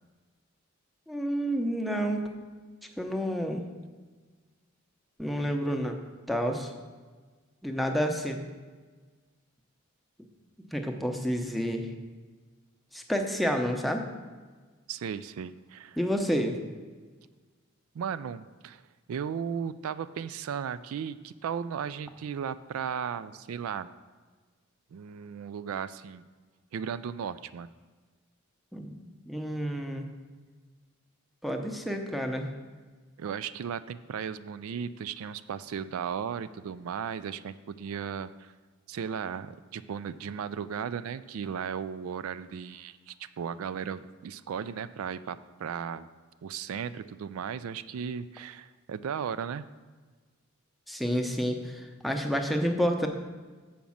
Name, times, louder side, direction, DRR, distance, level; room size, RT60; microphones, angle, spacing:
voice 1, 1.1-2.2 3.0-3.6 5.2-5.9 6.3-6.7 7.6-8.4 10.7-11.9 12.9-14.0 16.0-16.6 28.7-30.1 31.4-32.5 50.9-53.1, equal, ahead, 4 dB, 0.7 m, -29 dB
voice 2, 14.9-16.0 17.9-18.8 19.1-23.9 24.9-26.3 26.7-27.7 33.2-38.5 38.9-46.1 46.4-49.7, right 7 dB, 80° right, 14 dB, 0.3 m, -36 dB
7.2 x 5.1 x 7.1 m, 1.4 s
head